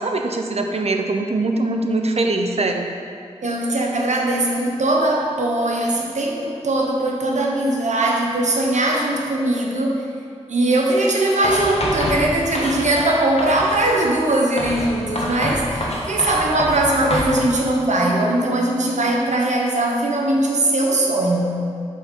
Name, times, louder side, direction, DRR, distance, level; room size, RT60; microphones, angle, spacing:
voice 1, 0.0-2.9, right 2 dB, 60° right, 3 dB, 0.6 m, -22 dB
voice 2, 3.4-10.1 10.5-21.7, right 1 dB, 80° right, -1 dB, 1.0 m, -20 dB
Writing, 11.4-13.1 13.4-13.9 14.6-17.3, left 1 dB, 60° left, 1.3 m, -26 dB
5.1 x 4.6 x 6.1 m, 2.3 s
cardioid pair, 45°, 12 cm